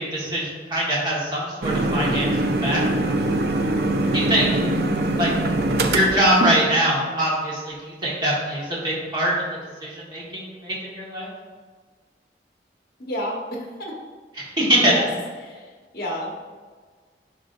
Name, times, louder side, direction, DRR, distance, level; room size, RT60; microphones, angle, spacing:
voice 1, 0.0-2.8 4.1-4.5 5.2-5.3 5.9-11.3 14.4-14.9, right 1 dB, 25° right, -6 dB, 1.6 m, -23 dB
sound 1, 1.6-6.7, right 2 dB, 65° right, 0.5 m, -23 dB
voice 2, 13.0-13.9 14.8-15.1 15.4-16.3, equal, 55° left, -1 dB, 1.3 m, -30 dB
10.5 x 3.7 x 2.6 m, 1.5 s
head